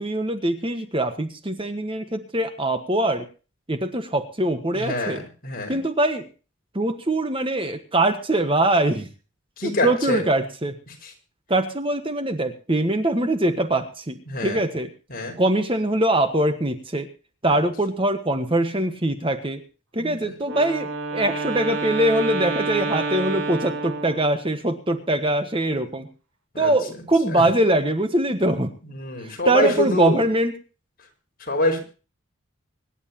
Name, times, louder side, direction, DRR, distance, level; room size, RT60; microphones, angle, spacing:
voice 1, 0.0-3.3 3.7-5.2 5.7-6.2 6.7-9.1 9.6-10.7 11.5-14.9 15.4-17.1 17.4-19.6 19.9-26.1 26.6-28.7 29.2-30.5, right 1 dB, 25° right, 8 dB, 1.4 m, -23 dB
voice 2, 4.7-5.8 9.6-10.2 10.9-11.1 14.3-14.6 15.1-15.4 20.0-20.3 26.5-26.7 27.3-27.5 28.8-30.2 31.4-31.8, left 1 dB, 45° left, 2 dB, 5.5 m, -26 dB
Wind instrument woodwind instrument, 20.4-24.5, right 3 dB, 75° right, 3.8 m, -29 dB
25.0 x 11.0 x 3.0 m, 0.36 s
head